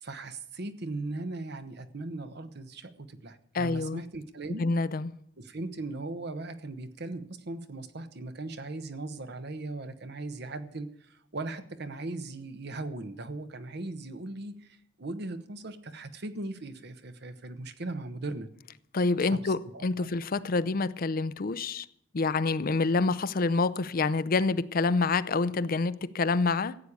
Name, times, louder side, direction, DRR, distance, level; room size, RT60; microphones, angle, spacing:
voice 1, 0.0-4.7 5.4-18.5 19.2-20.1, right 2 dB, 60° right, 1.1 m, -38 dB
voice 2, 3.5-4.0 4.6-5.1 18.9-21.9 22.1-26.8, left 3 dB, 50° left, 0.5 m, -27 dB
14.5 x 8.3 x 8.5 m
head